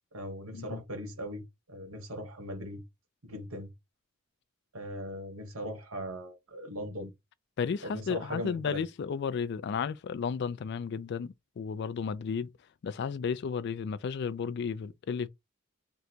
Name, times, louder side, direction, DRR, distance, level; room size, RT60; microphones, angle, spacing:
voice 1, 0.1-1.4 1.7-2.8 3.2-3.7 4.7-7.1 7.8-8.8, equal, 85° right, 1.6 m, -39 dB
voice 2, 7.6-12.5 12.8-15.3, left 6 dB, 50° left, 0.3 m, -33 dB
3.8 x 2.2 x 4.4 m
head